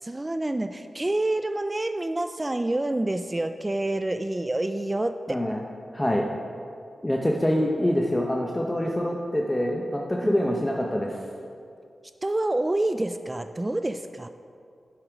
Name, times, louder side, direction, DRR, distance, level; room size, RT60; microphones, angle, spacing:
voice 1, 0.0-5.4 10.2-10.3 12.2-14.3, right 1 dB, 25° right, 9 dB, 0.4 m, -27 dB
voice 2, 5.3-5.6 5.9-6.3 7.0-11.2, equal, 15° left, 0 dB, 0.8 m, -25 dB
7.8 x 7.3 x 5.1 m, 2.4 s
cardioid pair, 45°, 0 cm